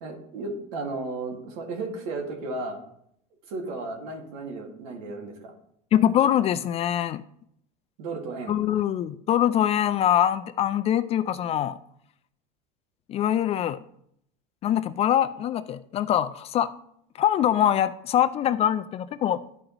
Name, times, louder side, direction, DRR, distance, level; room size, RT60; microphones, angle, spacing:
voice 1, 0.0-2.8 3.5-5.5 8.0-8.6, right 3 dB, 70° right, 2 dB, 2.0 m, -34 dB
voice 2, 5.9-7.2 8.5-11.8 13.1-13.8 14.6-16.7 17.2-19.4, left 10 dB, 35° left, 12 dB, 0.4 m, -23 dB
12.5 x 5.0 x 3.0 m, 0.71 s
supercardioid pair, 125°, 19 cm